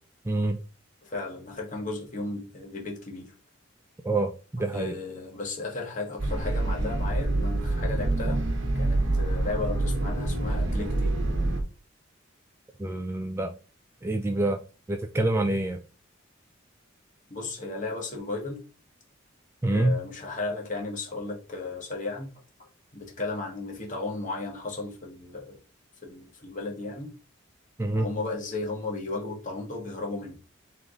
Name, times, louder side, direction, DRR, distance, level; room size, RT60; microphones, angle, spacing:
voice 1, 0.2-0.6 4.0-4.9 12.8-13.5 14.0-14.6 14.9-15.8 19.6-20.0 27.8-28.1, right 2 dB, 10° right, 0.3 m, -26 dB
voice 2, 1.0-3.3 4.6-8.4 8.7-11.2 17.3-18.7 19.7-22.3 22.6-25.6 26.1-27.1 27.9-30.4, left 3 dB, 40° left, 1.3 m, -35 dB
sound 1, 6.2-11.6, right 2 dB, 65° right, 1.0 m, -26 dB
3.7 x 3.3 x 3.8 m
head